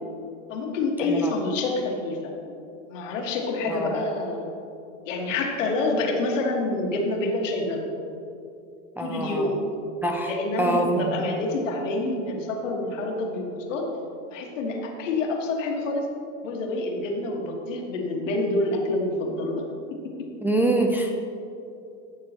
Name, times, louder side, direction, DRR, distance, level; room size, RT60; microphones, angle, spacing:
voice 1, 0.5-2.3 2.9-4.5 5.1-8.0 9.0-9.7 10.2-13.9 14.3-16.1 16.4-19.6 20.2-20.3, left 2 dB, 80° left, 0 dB, 1.8 m, -27 dB
voice 2, 1.0-1.3 3.7-4.0 9.0-9.5 10.0-10.3 10.6-11.2 20.4-21.1, right 1 dB, 5° right, 0 dB, 0.3 m, -25 dB
13.5 x 6.6 x 3.0 m, 2.7 s
supercardioid pair, 125°, 37 cm